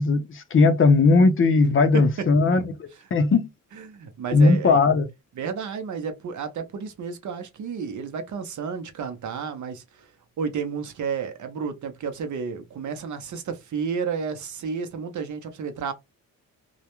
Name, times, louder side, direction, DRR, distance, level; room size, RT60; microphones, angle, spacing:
voice 1, 0.0-2.6 3.1-3.5 4.3-5.1, left 3 dB, 40° left, 0.5 m, -18 dB
voice 2, 1.7-2.3 3.7-4.8 5.4-10.1 10.4-15.9, right 6 dB, 60° right, 0.7 m, -31 dB
2.3 x 2.1 x 2.9 m
cardioid pair, 130°, 34 cm